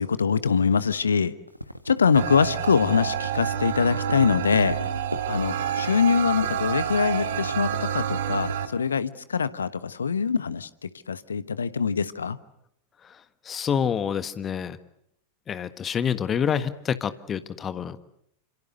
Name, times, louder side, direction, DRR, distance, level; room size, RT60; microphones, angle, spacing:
voice 1, 0.0-1.3 1.9-4.8 5.3-7.7 7.9-10.7 11.1-12.4, left 6 dB, 70° left, 15 dB, 1.2 m, -23 dB
sound 1, 1.5-8.9, equal, 90° right, 1.6 m, -38 dB
sound 2, 2.2-8.7, right 9 dB, 60° right, 2.0 m, -28 dB
voice 2, 13.4-14.8 15.5-18.0, left 7 dB, 25° left, 12 dB, 1.6 m, -27 dB
29.0 x 27.0 x 6.6 m, 0.74 s
figure-of-eight pair, 90°, 0 cm